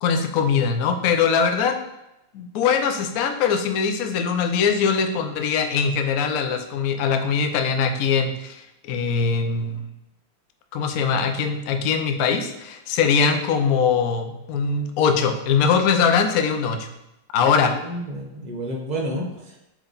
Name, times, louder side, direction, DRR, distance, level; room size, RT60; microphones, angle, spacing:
voice 1, 0.0-1.8 2.3-9.8 10.7-16.9 17.3-17.7, left 6 dB, 70° left, 6 dB, 0.9 m, -22 dB
voice 2, 17.6-19.6, right 1 dB, 40° right, 0 dB, 0.6 m, -30 dB
7.2 x 3.5 x 4.0 m, 0.89 s
omnidirectional pair, 2.2 m